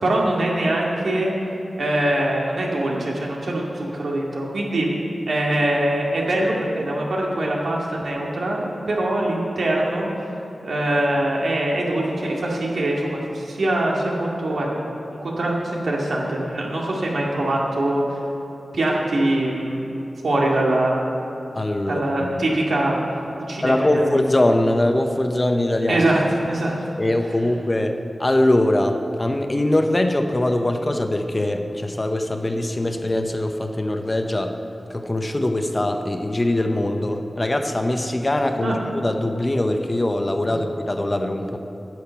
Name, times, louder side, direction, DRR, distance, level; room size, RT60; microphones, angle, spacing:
voice 1, 0.0-1.3 1.8-4.9 5.3-10.1 10.6-14.7 15.1-18.0 18.7-19.9 20.2-21.0 21.8-23.0 23.5-24.1 25.9-26.8 38.6-38.8, right 1 dB, 80° right, -3 dB, 2.1 m, -23 dB
voice 2, 21.6-22.4 23.6-26.0 27.0-34.5 34.9-41.6, left 1 dB, 25° left, 5 dB, 0.7 m, -22 dB
10.5 x 6.5 x 8.3 m, 2.8 s
wide cardioid pair, 95°, 0 cm